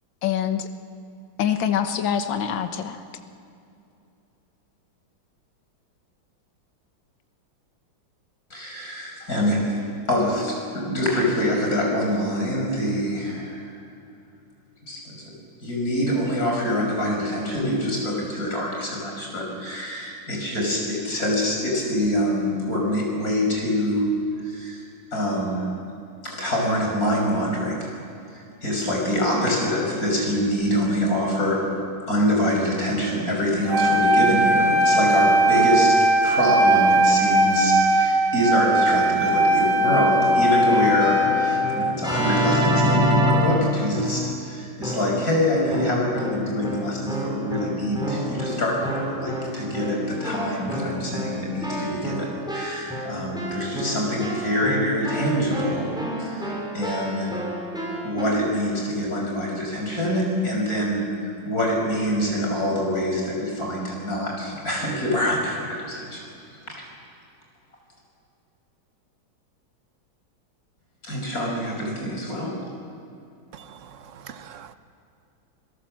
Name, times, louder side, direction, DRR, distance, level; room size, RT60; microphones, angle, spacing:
voice 1, 0.2-0.7 1.4-3.0, left 9 dB, 70° left, 8 dB, 1.9 m, -24 dB
voice 2, 8.5-9.6 10.1-13.6 14.8-15.2 15.6-24.1 24.4-24.8 25.1-25.7 26.2-27.9 28.3-31.6 32.1-55.9 56.2-57.3 58.0-66.3 66.7-66.8 71.0-72.5, left 1 dB, 45° left, -1 dB, 6.1 m, -25 dB
Wind instrument woodwind instrument, 33.7-42.0, right 1 dB, 35° right, 2.7 m, -19 dB
Keyboard (musical), 40.7-44.4 44.8-45.3 45.7-58.2, equal, ahead, 4.9 m, -28 dB
voice 3, 73.5-74.7, right 8 dB, 50° right, 10 dB, 0.9 m, -44 dB
27.5 x 17.0 x 7.5 m, 2.6 s
omnidirectional pair, 2.2 m